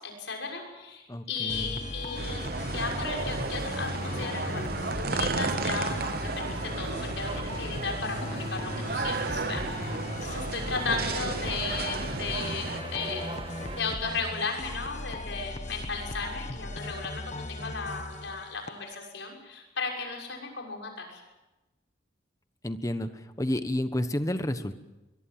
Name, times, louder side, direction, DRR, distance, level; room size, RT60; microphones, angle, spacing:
voice 1, 0.0-2.5 2.7-13.4 13.7-21.2, left 4 dB, 75° left, 1 dB, 6.5 m, -35 dB
voice 2, 1.1-1.8 10.6-11.0 22.6-24.7, left 1 dB, 15° left, 10 dB, 1.2 m, -31 dB
sound 1, 1.5-18.9, left 1 dB, 40° left, 1.4 m, -38 dB
sound 2, 2.1-12.8, right 3 dB, 50° right, 0.9 m, -34 dB
sound 3, 2.4-13.8, right 2 dB, 30° right, 1.8 m, -42 dB
23.0 x 22.0 x 7.6 m, 1.0 s
head